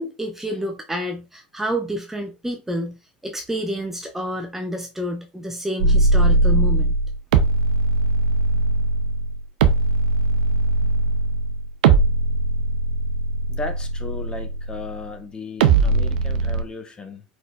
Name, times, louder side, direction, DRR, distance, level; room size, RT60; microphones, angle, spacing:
voice 1, 0.0-3.0 3.2-6.9, equal, 5° right, 0.8 m, -29 dB
sound 1, 5.8-15.0 15.6-16.6, right 3 dB, 65° right, 0.6 m, -20 dB
voice 2, 13.5-17.2, left 3 dB, 20° left, 1.3 m, -35 dB
5.0 x 4.1 x 2.5 m
figure-of-eight pair, 80°, 5 cm